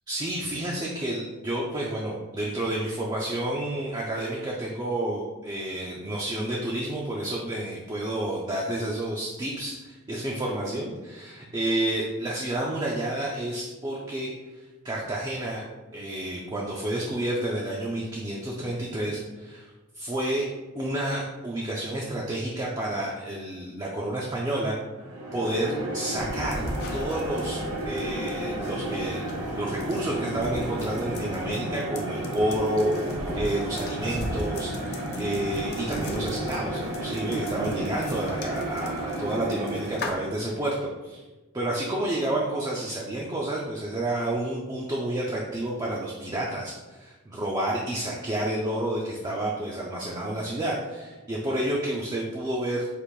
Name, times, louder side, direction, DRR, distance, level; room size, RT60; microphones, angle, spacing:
voice 1, 0.1-15.6 15.9-20.5 20.8-24.8 25.3-41.2 41.5-52.9, right 1 dB, 20° right, -3 dB, 0.4 m, -30 dB
sound 1, 25.0-40.3, right 1 dB, 70° right, 0.8 m, -32 dB
sound 2, 26.2-40.1, left 2 dB, 45° left, 0.5 m, -39 dB
5.0 x 2.5 x 3.1 m, 1.2 s
head